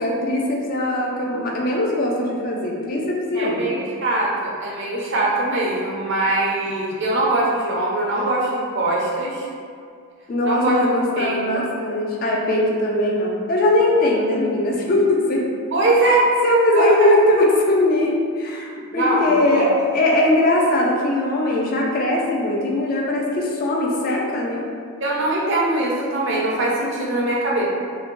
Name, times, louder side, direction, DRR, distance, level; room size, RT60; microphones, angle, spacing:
voice 1, 0.0-3.8 8.1-8.2 10.3-15.4 16.0-16.2 16.4-24.7, left 1 dB, 40° left, -2 dB, 0.3 m, -20 dB
voice 2, 3.3-9.5 10.4-10.8 11.2-11.7 15.7-16.3 16.7-17.1 18.9-19.7 25.0-27.6, right 2 dB, 55° right, -5 dB, 0.5 m, -22 dB
3.0 x 2.1 x 2.5 m, 2.2 s
head